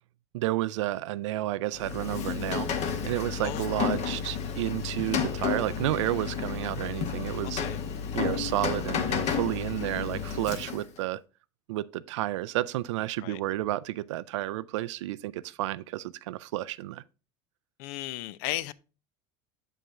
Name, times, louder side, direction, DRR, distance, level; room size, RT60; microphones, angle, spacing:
voice 1, 0.3-7.6 8.1-11.2 11.7-17.0, right 16 dB, 90° right, 0.4 m, -31 dB
Rain, 1.7-11.0, left 7 dB, 50° left, 1.2 m, -32 dB
voice 2, 3.4-3.8 7.4-7.8 13.2-13.4 17.8-18.7, left 15 dB, 65° left, 0.5 m, -35 dB
7.4 x 5.4 x 3.6 m
supercardioid pair, 110°, 15 cm